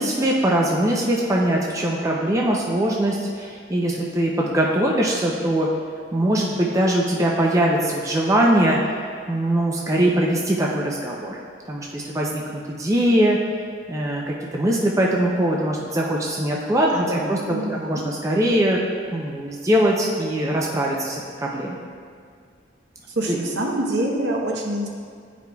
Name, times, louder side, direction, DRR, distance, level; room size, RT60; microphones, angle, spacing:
voice 1, 0.0-5.7 6.1-8.8 9.3-11.4 11.7-13.4 13.9-21.8 23.3-23.4, right 1 dB, 15° right, -3 dB, 0.4 m, -22 dB
voice 2, 16.9-18.0 23.2-24.9, right 1 dB, 65° right, -1 dB, 0.9 m, -26 dB
10.5 x 4.9 x 2.3 m, 2.1 s
head